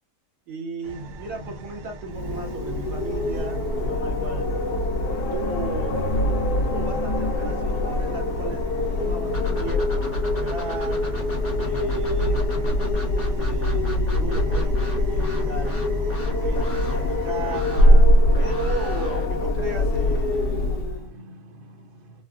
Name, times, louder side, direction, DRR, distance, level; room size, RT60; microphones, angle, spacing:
voice 1, 0.5-4.5 5.3-6.0 6.6-8.6 9.0-11.0 11.6-12.8 13.4-15.8 16.4-20.8, right 3 dB, 80° right, 1.7 m, -35 dB
sound 1, 0.8-17.6, equal, 60° right, 1.1 m, -40 dB
Wind, 2.1-21.1, left 1 dB, 70° left, 1.0 m, -23 dB
sound 2, 9.3-20.2, left 3 dB, 15° left, 0.6 m, -32 dB
voice 2, 18.2-22.2, equal, 40° right, 0.9 m, -48 dB
4.0 x 2.2 x 2.3 m
omnidirectional pair, 1.8 m